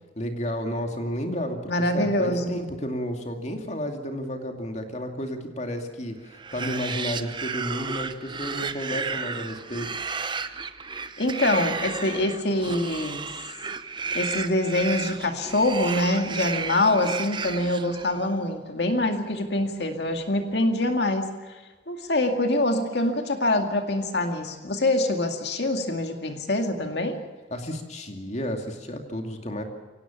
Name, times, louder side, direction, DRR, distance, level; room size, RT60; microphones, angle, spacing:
voice 1, 0.2-9.9 27.5-29.6, equal, 40° left, 4 dB, 2.5 m, -32 dB
voice 2, 1.7-2.6 11.2-13.3 14.1-21.3 21.9-27.2, left 1 dB, 65° left, 5 dB, 2.1 m, -25 dB
sound 1, 6.3-18.3, right 5 dB, 25° right, 0.9 m, -33 dB
24.5 x 18.0 x 7.1 m, 1.3 s
head